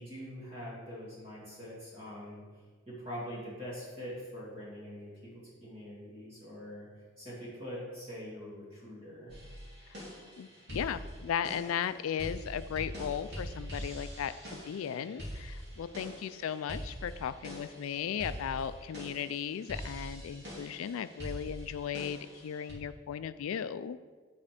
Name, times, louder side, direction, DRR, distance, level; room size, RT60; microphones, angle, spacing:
voice 1, 0.0-6.9 7.2-9.4, equal, 25° right, -7 dB, 2.3 m, -44 dB
sound 1, 9.3-22.7, equal, 50° right, 2.5 m, -44 dB
voice 2, 10.4-24.0, left 8 dB, 80° left, 14 dB, 0.3 m, -36 dB
9.7 x 4.2 x 5.1 m, 1.5 s
head